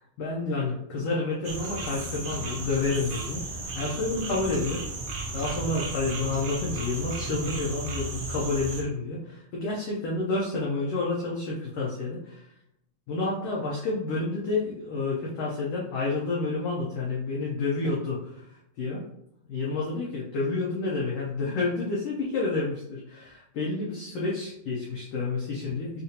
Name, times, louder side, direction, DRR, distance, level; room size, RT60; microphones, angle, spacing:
voice 1, 0.2-4.8 5.3-12.4 13.1-18.4 18.8-19.0 19.5-26.0, left 3 dB, 85° left, -4 dB, 1.3 m, -29 dB
sound 1, 1.4-8.8, right 3 dB, 85° right, 1.3 m, -34 dB
5.2 x 2.5 x 2.8 m, 0.80 s
omnidirectional pair, 3.6 m